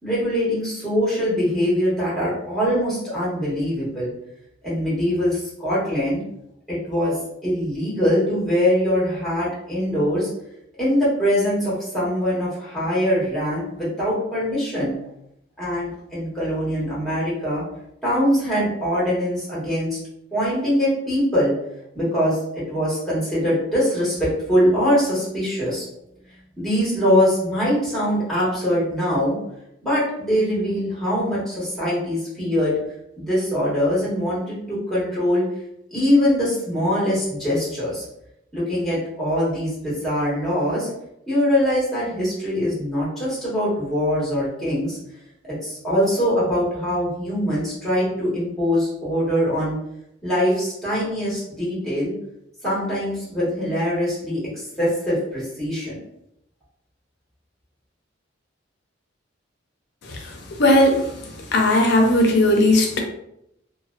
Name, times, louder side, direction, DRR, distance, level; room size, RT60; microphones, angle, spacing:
voice 1, 0.0-4.1 4.6-6.2 6.7-7.2 7.4-10.3 10.8-14.9 15.6-17.6 18.0-20.0 20.3-21.5 21.9-25.9 26.6-29.4 29.8-32.7 33.2-35.4 35.9-38.0 38.5-40.9 41.3-45.0 45.6-49.8 50.2-52.1 52.6-56.0, equal, ahead, -10 dB, 1.2 m, -22 dB
voice 2, 60.6-61.0 61.5-63.0, left 1 dB, 60° left, 2 dB, 0.5 m, -16 dB
2.4 x 2.2 x 2.4 m, 0.79 s
head